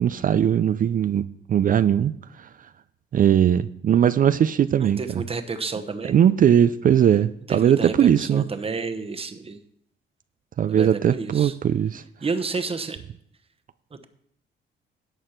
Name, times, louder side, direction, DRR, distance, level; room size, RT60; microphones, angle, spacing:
voice 1, 0.0-2.5 3.1-5.2 6.1-8.5 10.6-12.0, right 9 dB, 45° right, 14 dB, 0.4 m, -20 dB
voice 2, 4.8-6.2 7.5-9.6 10.7-11.5 12.2-13.0, right 4 dB, 30° right, 9 dB, 1.0 m, -30 dB
11.5 x 7.9 x 4.4 m, 0.69 s
cardioid pair, 90°, 20 cm